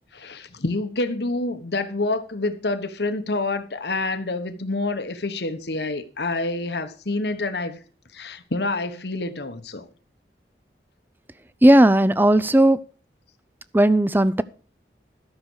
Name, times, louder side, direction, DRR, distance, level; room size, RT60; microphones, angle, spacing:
voice 1, 0.1-7.8 8.1-9.9, left 2 dB, 75° left, 1.2 m, -27 dB
voice 2, 11.6-12.8 13.7-14.4, right 1 dB, 10° right, 0.5 m, -15 dB
13.0 x 6.8 x 6.3 m
head